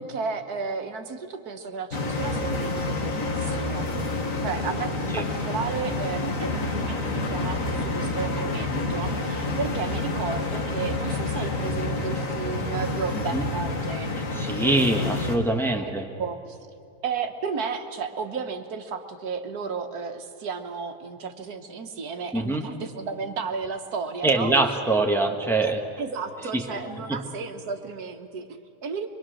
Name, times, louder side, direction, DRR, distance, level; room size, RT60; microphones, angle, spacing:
voice 1, 0.0-3.9 4.4-14.2 15.8-15.9 16.2-16.6 17.0-24.5 25.6-25.7 26.0-29.1, right 5 dB, 85° right, 6 dB, 1.8 m, -33 dB
sound 1, 1.9-15.4, left 2 dB, 60° left, 2.1 m, -28 dB
voice 2, 14.3-16.1 22.3-22.7 24.2-25.8 26.5-26.6 27.1-27.2, right 2 dB, ahead, 3 dB, 1.3 m, -23 dB
24.0 x 23.5 x 6.4 m, 2.5 s
omnidirectional pair, 1.6 m